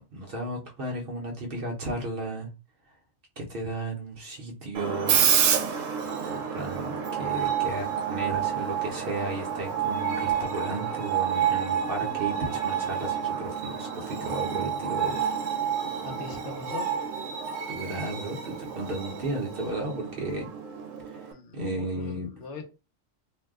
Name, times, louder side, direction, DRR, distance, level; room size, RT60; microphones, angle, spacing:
voice 1, 0.0-2.5 3.4-5.3 6.3-15.2 17.7-20.5 21.1-21.3 21.5-22.3, right 2 dB, 55° right, 0.8 m, -34 dB
Screech, 4.7-21.3, right 8 dB, 90° right, 0.9 m, -29 dB
voice 2, 16.0-16.9 21.3-22.6, left 4 dB, 70° left, 1.0 m, -40 dB
2.5 x 2.1 x 3.5 m
omnidirectional pair, 1.3 m